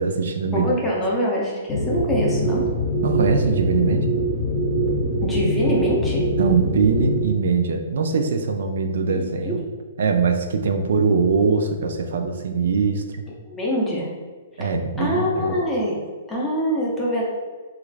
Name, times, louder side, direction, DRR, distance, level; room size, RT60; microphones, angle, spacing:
voice 1, 0.0-0.8 3.0-4.1 6.4-9.6 10.0-13.2 14.6-15.6, right 5 dB, 65° right, 6 dB, 0.4 m, -22 dB
voice 2, 0.5-2.6 5.2-6.3 9.1-9.6 13.5-14.1 14.6-14.7 15.0-16.0 16.3-17.2, equal, 5° left, -5 dB, 0.5 m, -24 dB
sound 1, 1.7-7.2, right 1 dB, 30° left, 0.9 m, -23 dB
3.0 x 2.4 x 3.2 m, 1.4 s
hypercardioid pair, 170°, 0 cm